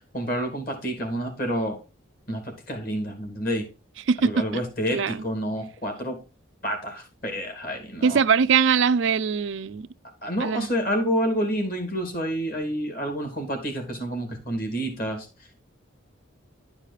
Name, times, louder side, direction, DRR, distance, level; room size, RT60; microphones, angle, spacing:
voice 1, 0.1-1.8 2.3-3.7 4.2-6.2 6.6-8.2 10.2-15.6, equal, 45° left, 2.5 m, -29 dB
voice 2, 4.1-4.4 4.9-5.2 8.0-9.9 10.4-10.7, right 6 dB, 70° right, 0.4 m, -22 dB
11.0 x 4.9 x 4.0 m
head